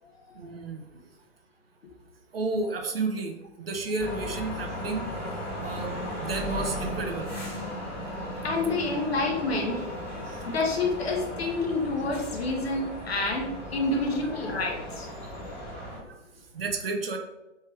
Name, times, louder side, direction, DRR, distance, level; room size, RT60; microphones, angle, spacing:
voice 1, 0.3-0.8 2.3-5.1 5.6-7.4 13.2-13.4 15.7-16.2 16.5-17.2, right 3 dB, 50° right, 3 dB, 0.6 m, -32 dB
sound 1, 4.0-16.0, left 1 dB, 5° left, 0.7 m, -36 dB
voice 2, 8.4-9.9 10.4-15.1, left 2 dB, 55° left, 1 dB, 0.9 m, -28 dB
3.3 x 3.2 x 3.3 m, 1.0 s
figure-of-eight pair, 130°, 38 cm